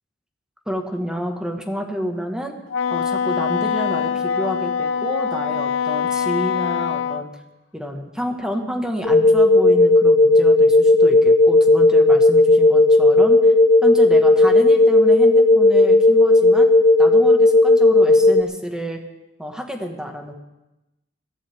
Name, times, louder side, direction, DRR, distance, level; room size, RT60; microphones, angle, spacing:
voice 1, 0.7-2.5 2.9-7.3 7.7-13.5 13.8-16.7 17.0-19.0 19.4-20.3, equal, 5° right, 3 dB, 1.5 m, -29 dB
Wind instrument woodwind instrument, 2.7-7.2, left 7 dB, 85° left, 0.6 m, -23 dB
sound 1, 9.0-18.4, left 2 dB, 35° left, 0.6 m, -14 dB
21.0 x 15.0 x 3.5 m, 0.97 s
head